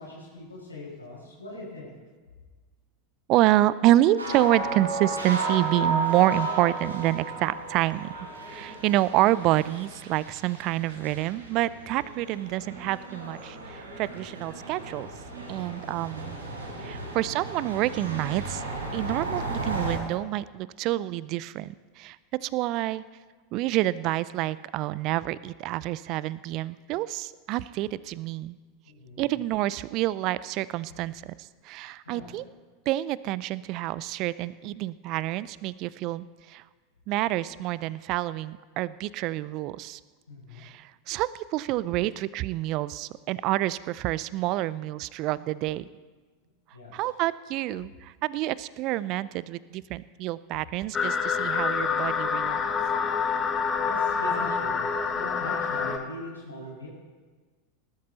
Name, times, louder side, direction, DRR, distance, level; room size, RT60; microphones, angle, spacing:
voice 1, 0.0-1.9 28.9-29.2 32.1-32.3 40.3-40.6 46.7-46.9 53.8-56.9, left 1 dB, 85° left, -4 dB, 5.5 m, -40 dB
voice 2, 3.3-8.1 8.5-15.1 15.5-16.4 16.8-18.6 18.9-22.2 22.4-23.0 23.5-28.6 29.2-32.4 32.9-36.6 37.1-40.0 40.6-45.8 46.9-52.6, right 15 dB, 45° right, 19 dB, 0.4 m, -28 dB
sound 1, 4.2-20.0, right 3 dB, 85° right, 4.5 m, -34 dB
sound 2, 50.9-56.0, left 6 dB, 25° left, 1.2 m, -27 dB
19.0 x 12.0 x 4.0 m, 1.4 s
figure-of-eight pair, 85°, 0 cm